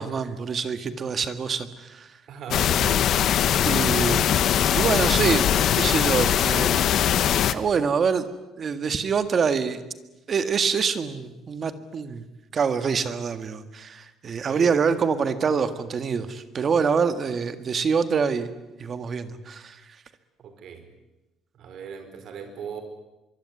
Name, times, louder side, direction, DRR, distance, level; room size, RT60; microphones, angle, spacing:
voice 1, 0.0-2.1 2.8-3.0 3.6-5.4 5.8-6.8 7.2-8.3 8.6-9.8 10.3-12.3 12.5-18.5 18.8-19.8, right 6 dB, 30° right, 11 dB, 1.8 m, -25 dB
voice 2, 2.3-3.1 14.5-15.1 20.4-20.9 21.5-22.8, right 5 dB, 50° right, 7 dB, 5.0 m, -38 dB
sound 1, 2.5-7.5, left 10 dB, 50° left, 1.2 m, -21 dB
24.5 x 24.0 x 9.8 m, 1.0 s
cardioid pair, 170°, 0 cm